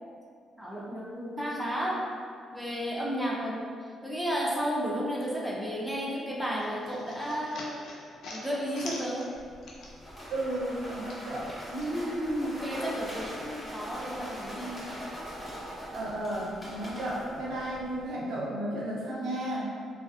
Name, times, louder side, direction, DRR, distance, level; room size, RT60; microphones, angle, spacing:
voice 1, 0.6-2.1 2.5-3.6 4.0-7.8 8.3-9.3 12.4-15.0, equal, ahead, -4 dB, 0.4 m, -33 dB
sound 1, 6.6-10.2 10.5-11.9, left 2 dB, 75° left, 0.4 m, -44 dB
sound 2, 9.3-18.1, equal, 25° left, 0.7 m, -42 dB
voice 2, 10.3-12.5 15.9-19.7, right 1 dB, 85° right, -5 dB, 0.5 m, -33 dB
2.4 x 2.3 x 2.3 m, 2.2 s
cardioid pair, 90°, 0 cm